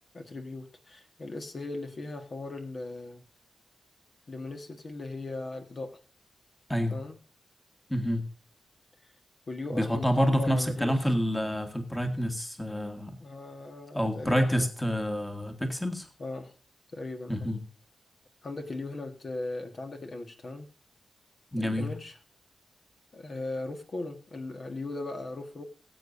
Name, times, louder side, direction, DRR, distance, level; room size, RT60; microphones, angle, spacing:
voice 1, 0.1-3.2 4.3-6.0 6.9-7.2 9.0-9.1 9.5-11.1 13.2-14.7 16.2-16.5 16.9-17.5 18.4-20.7 21.6-22.2 23.1-25.6, left 2 dB, 40° left, 5 dB, 1.4 m, -38 dB
voice 2, 7.9-8.2 9.7-13.2 13.9-16.1 17.3-17.6 21.5-21.9, equal, 5° left, 6 dB, 1.6 m, -28 dB
19.5 x 8.4 x 2.6 m, 0.39 s
wide cardioid pair, 140°, 0 cm